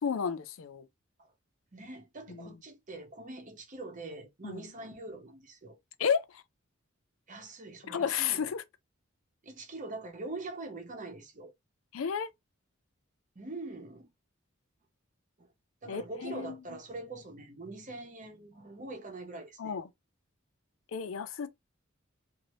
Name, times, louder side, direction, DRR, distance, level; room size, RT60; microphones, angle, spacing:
voice 1, 0.0-0.9 2.4-2.5 4.4-4.6 6.0-6.4 7.9-8.6 11.9-12.3 15.9-16.6 19.6-19.9 20.9-21.5, left 7 dB, 75° left, 0.4 m, -32 dB
voice 2, 1.7-5.8 7.3-8.5 9.4-11.5 13.4-14.1 15.4-15.5 15.8-19.8, right 2 dB, 40° right, 0.9 m, -43 dB
2.8 x 2.6 x 3.0 m
head